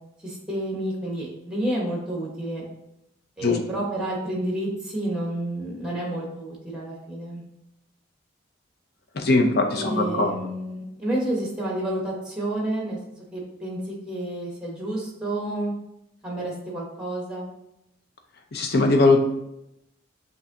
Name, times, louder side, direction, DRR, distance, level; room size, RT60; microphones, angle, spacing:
voice 1, 0.2-2.6 3.4-7.4 9.8-13.0 13.3-13.8 14.1-15.7 16.2-17.5, right 1 dB, 5° right, -3 dB, 1.1 m, -30 dB
voice 2, 9.1-10.3 18.5-19.2, left 2 dB, 50° left, 4 dB, 0.6 m, -20 dB
7.2 x 2.7 x 2.7 m, 0.85 s
head